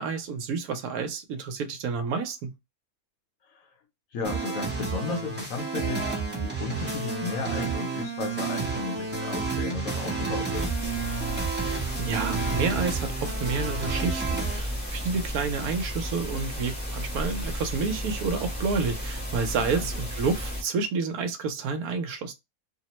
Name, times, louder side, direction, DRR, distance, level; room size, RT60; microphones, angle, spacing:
voice 1, 0.0-2.5 11.5-22.3, right 4 dB, 75° right, 1.1 m, -30 dB
voice 2, 4.1-10.7 19.6-19.9, left 5 dB, 70° left, 1.0 m, -34 dB
sound 1, 4.2-14.6, right 4 dB, 10° right, 0.5 m, -31 dB
sound 2, 10.5-20.6, equal, 10° left, 0.8 m, -33 dB
2.8 x 2.0 x 2.9 m
omnidirectional pair, 1.6 m